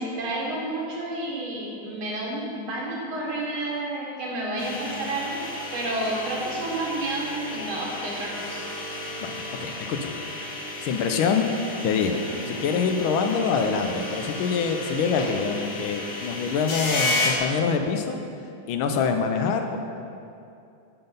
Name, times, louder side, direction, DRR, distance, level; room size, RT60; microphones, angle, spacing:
voice 1, 0.0-5.5 5.7-8.6, right 1 dB, 70° right, -3 dB, 2.2 m, -30 dB
sound 1, 4.6-17.4, left 2 dB, 50° left, 1.1 m, -32 dB
voice 2, 9.2-10.2 10.8-11.5 11.8-12.2 12.5-18.2 18.7-19.8, left 5 dB, 75° left, 5 dB, 1.4 m, -25 dB
11.0 x 4.0 x 5.2 m, 2.6 s
omnidirectional pair, 2.3 m